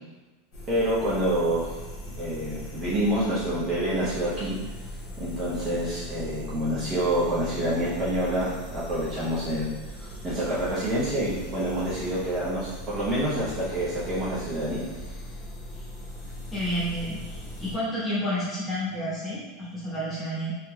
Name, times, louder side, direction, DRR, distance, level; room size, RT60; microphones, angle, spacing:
sound 1, 0.5-17.7, left 1 dB, 40° left, 0.9 m, -39 dB
voice 1, 0.7-1.8 2.2-4.6 5.2-9.7 10.0-14.8, right 1 dB, 25° right, -9 dB, 0.9 m, -27 dB
voice 2, 16.5-20.5, equal, 15° left, -9 dB, 1.1 m, -30 dB
3.7 x 2.9 x 2.2 m, 1.2 s
supercardioid pair, 165°, 0 cm